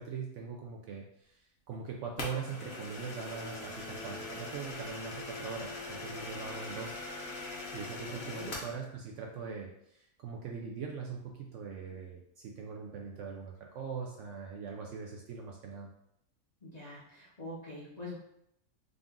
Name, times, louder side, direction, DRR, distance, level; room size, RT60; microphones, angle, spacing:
voice 1, 0.0-1.4 1.7-7.0 7.7-15.9, right 5 dB, 70° right, 0 dB, 0.8 m, -41 dB
sound 1, 2.2-8.8, left 2 dB, 65° left, 1.3 m, -42 dB
voice 2, 8.1-8.6 16.6-18.2, left 1 dB, 35° left, -6 dB, 0.8 m, -45 dB
3.8 x 2.4 x 3.6 m, 0.75 s
omnidirectional pair, 1.5 m